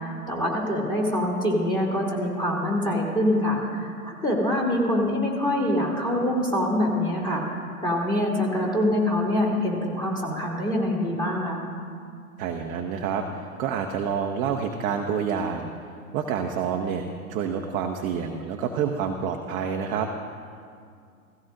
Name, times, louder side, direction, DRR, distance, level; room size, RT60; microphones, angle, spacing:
voice 1, 0.0-11.6, left 1 dB, 10° left, -3 dB, 2.8 m, -25 dB
voice 2, 12.4-15.7 16.1-20.1, right 7 dB, 20° right, 3 dB, 0.5 m, -28 dB
16.5 x 16.0 x 2.6 m, 2.3 s
figure-of-eight pair, 110°, 42 cm